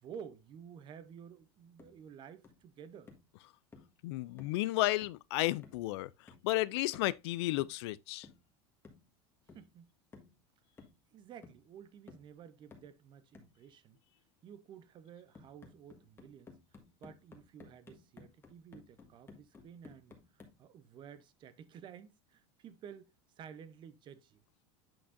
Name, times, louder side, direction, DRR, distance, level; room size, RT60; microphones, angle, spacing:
voice 1, 0.0-3.1 9.5-9.9 11.1-14.0 14.4-16.5 17.0-24.4, right 8 dB, 35° right, 0.8 m, -52 dB
sound 1, 1.8-2.0 2.4-2.7 3.1-3.3 3.7-4.0 4.4-4.6 5.0-5.3 5.6-5.9 6.3-6.5 6.9-7.2 7.6-7.8 8.2-8.5 8.8-9.1 9.5-9.7 10.1-10.4 10.8-11.1 11.4-11.7 12.1-12.3 12.7-13.0 13.3-13.6 15.3-20.6, left 4 dB, 15° left, 1.5 m, -57 dB
voice 2, 4.0-8.3, left 18 dB, 80° left, 0.4 m, -33 dB
8.6 x 5.9 x 2.6 m
supercardioid pair, 140°, 14 cm